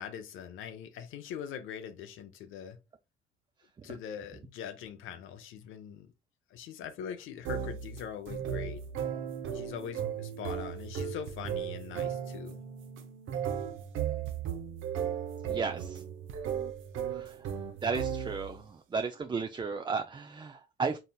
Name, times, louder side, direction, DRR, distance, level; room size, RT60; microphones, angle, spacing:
voice 1, 0.0-2.8 3.8-6.1 6.5-8.8 9.5-12.6, left 8 dB, 90° left, 0.6 m, -42 dB
sound 1, 7.4-18.6, right 8 dB, 85° right, 0.7 m, -36 dB
voice 2, 15.5-16.0 17.1-17.4 17.8-21.0, right 5 dB, 25° right, 0.3 m, -34 dB
4.0 x 3.9 x 2.3 m
cardioid pair, 90°, 20 cm